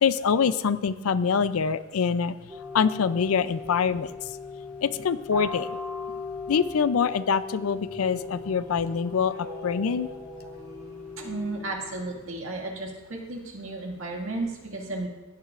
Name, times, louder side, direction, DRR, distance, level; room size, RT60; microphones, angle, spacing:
voice 1, 0.0-2.4 2.7-4.1 4.8-5.7 6.5-9.3 9.6-10.1, left 6 dB, 80° left, 15 dB, 0.4 m, -24 dB
sound 1, 2.5-12.1, left 4 dB, 25° right, 3.7 m, -38 dB
voice 2, 11.2-15.1, right 2 dB, 70° right, 0 dB, 2.0 m, -33 dB
15.5 x 10.0 x 2.5 m, 1.1 s
head